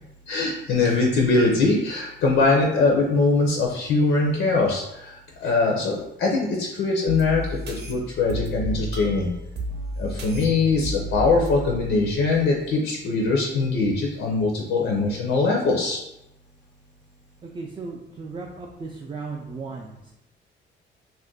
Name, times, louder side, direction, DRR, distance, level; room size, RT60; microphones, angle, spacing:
voice 1, 0.3-9.3 10.0-16.0, left 3 dB, 75° left, -1 dB, 0.6 m, -22 dB
sound 1, 7.1-12.7, right 1 dB, 60° right, 0.7 m, -33 dB
voice 2, 17.5-20.1, right 4 dB, 25° right, -1 dB, 0.4 m, -36 dB
2.5 x 2.1 x 3.7 m, 0.85 s
cardioid pair, 90°, 20 cm